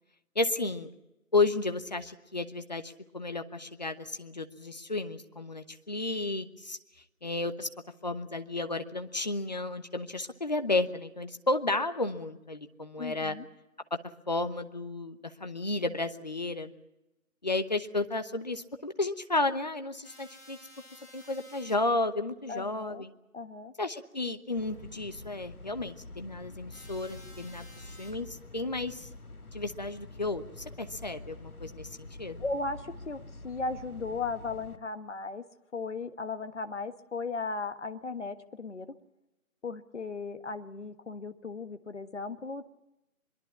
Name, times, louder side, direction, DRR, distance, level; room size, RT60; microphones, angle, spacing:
voice 1, 0.3-0.9 1.3-6.8 7.2-7.7 8.0-13.4 14.3-16.7 17.4-20.6 21.1-23.1 23.8-29.1 29.5-30.4 30.8-32.4, left 2 dB, 30° left, 8 dB, 1.0 m, -32 dB
voice 2, 13.0-13.4 22.5-23.0 23.3-23.7 32.4-35.4 35.7-38.9 39.6-42.6, left 3 dB, 55° left, 9 dB, 1.5 m, -36 dB
sound 1, 20.0-21.7 26.7-28.1, left 1 dB, 10° left, 5.1 m, -53 dB
sound 2, 24.6-34.8, left 2 dB, 80° left, 2.0 m, -47 dB
23.0 x 22.5 x 7.2 m, 0.95 s
figure-of-eight pair, 160°, 43 cm